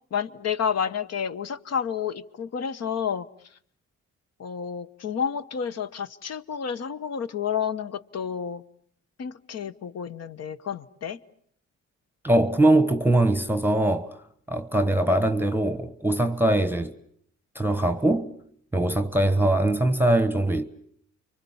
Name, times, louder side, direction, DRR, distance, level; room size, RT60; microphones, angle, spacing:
voice 1, 0.1-3.3 4.4-8.6 9.2-11.2, left 7 dB, 55° left, 1.3 m, -30 dB
voice 2, 12.2-14.2 14.5-16.9 17.5-18.3 18.7-20.7, right 1 dB, 5° right, 1.1 m, -22 dB
30.0 x 24.5 x 7.2 m
cardioid pair, 90°, 30 cm